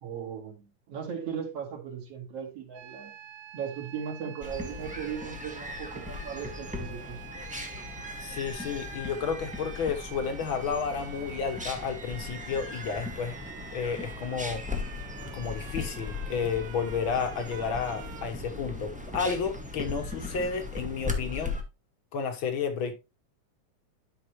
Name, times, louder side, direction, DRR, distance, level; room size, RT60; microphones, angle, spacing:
voice 1, 0.0-3.1 3.5-7.2, right 7 dB, 55° right, 3.0 m, -37 dB
sound 1, 2.7-18.3, right 10 dB, 75° right, 2.1 m, -47 dB
sound 2, 4.4-21.6, left 3 dB, 10° right, 0.3 m, -38 dB
voice 2, 8.2-13.4 13.7-14.6 15.3-21.6 22.1-22.9, left 6 dB, 55° left, 1.5 m, -31 dB
11.5 x 5.4 x 3.1 m
omnidirectional pair, 3.6 m